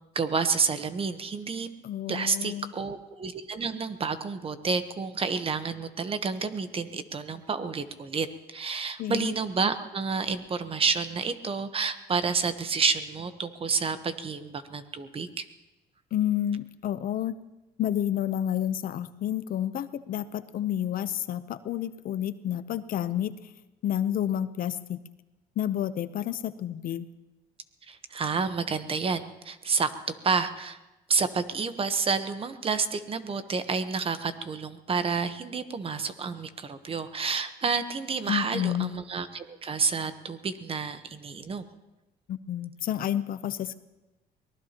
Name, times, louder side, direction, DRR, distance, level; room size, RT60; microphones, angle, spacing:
voice 1, 0.1-1.7 2.1-15.5 27.9-29.9 30.2-30.8 31.1-41.7, right 5 dB, 35° right, 10 dB, 1.0 m, -29 dB
voice 2, 1.8-2.7 9.0-9.3 16.1-17.3 17.8-23.3 23.8-25.0 25.6-27.1 38.3-38.9 42.3-43.8, left 11 dB, 60° left, 13 dB, 0.7 m, -30 dB
24.0 x 19.0 x 2.9 m, 1.0 s
cardioid pair, 110°, 17 cm